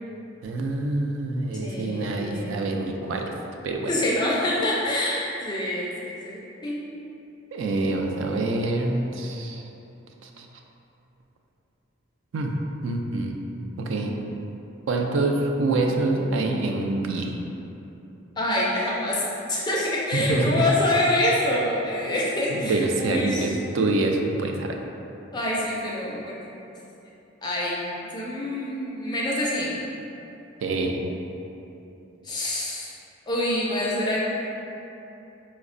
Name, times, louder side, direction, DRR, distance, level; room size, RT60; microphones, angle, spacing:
voice 1, 0.4-3.3 3.6-3.9 7.5-9.7 10.2-10.5 12.3-12.5 12.8-13.4 13.8-14.1 14.9-17.4 20.1-20.6 22.5-24.8 30.6-31.0, right 2 dB, 70° right, 2 dB, 0.3 m, -26 dB
voice 2, 1.6-2.6 3.9-6.8 18.4-19.2 19.5-23.5 25.3-26.5 27.4-27.8 28.1-29.8 32.2-32.9 33.3-34.2, left 1 dB, 20° left, -5 dB, 0.3 m, -26 dB
4.7 x 2.1 x 2.5 m, 2.9 s
head